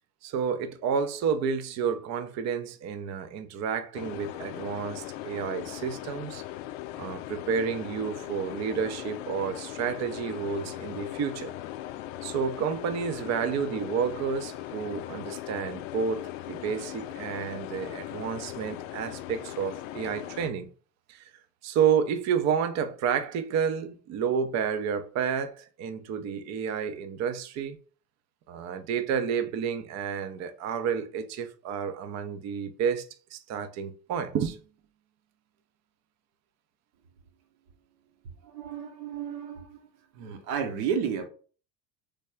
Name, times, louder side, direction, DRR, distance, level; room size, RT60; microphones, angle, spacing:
voice 1, 0.2-6.4 7.0-11.5 12.2-20.7 21.1-21.2 21.6-27.8 28.5-33.1 33.3-34.6, right 7 dB, 35° right, 0.7 m, -30 dB
sound 1, 3.9-20.5, left 14 dB, 50° left, 0.5 m, -39 dB
voice 2, 38.4-39.9 40.1-41.3, right 7 dB, 55° right, 1.0 m, -32 dB
4.0 x 3.4 x 3.6 m
figure-of-eight pair, 70°, 50 cm